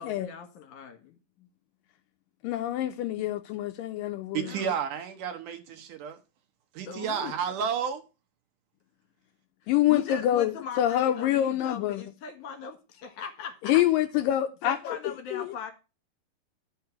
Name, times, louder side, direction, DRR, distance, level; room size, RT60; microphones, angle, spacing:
voice 1, 0.0-1.5 4.4-4.8 6.9-7.3 9.6-13.8 14.6-15.7, left 5 dB, 60° left, 2.9 m, -39 dB
voice 2, 2.4-4.5 9.7-12.0 13.7-15.0 15.3-15.4, left 12 dB, 80° left, 2.1 m, -26 dB
voice 3, 4.3-6.2 6.7-8.0, right 7 dB, 70° right, 2.3 m, -31 dB
12.0 x 5.9 x 4.6 m
omnidirectional pair, 4.3 m